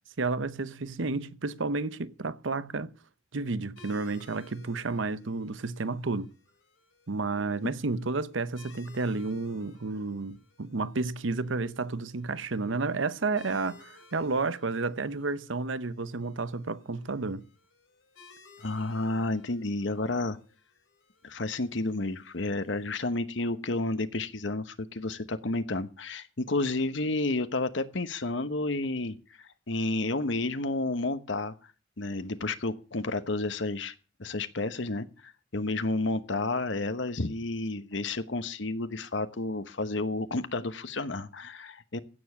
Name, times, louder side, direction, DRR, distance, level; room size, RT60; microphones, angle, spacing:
voice 1, 0.2-2.9 3.3-6.3 7.1-17.5, right 3 dB, 75° right, 0.8 m, -31 dB
sound 1, 3.8-22.9, left 4 dB, 90° left, 4.8 m, -59 dB
voice 2, 18.6-20.4 21.2-31.5 32.0-33.9 34.2-42.0, left 2 dB, 70° left, 1.0 m, -31 dB
16.0 x 7.1 x 7.0 m
head